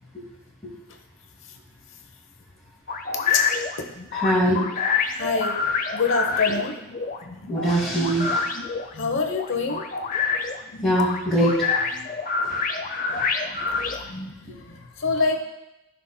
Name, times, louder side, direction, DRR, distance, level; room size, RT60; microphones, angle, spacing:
sound 1, 2.9-14.3, left 5 dB, 40° left, 0.6 m, -27 dB
voice 1, 4.2-4.6 7.5-8.4 10.8-11.7, right 1 dB, 5° left, -13 dB, 2.1 m, -21 dB
voice 2, 5.1-5.6 5.9-6.7 8.9-9.8 13.1-14.0 14.5-15.4, left 4 dB, 60° left, 5 dB, 0.9 m, -26 dB
14.0 x 5.9 x 2.2 m, 0.93 s
head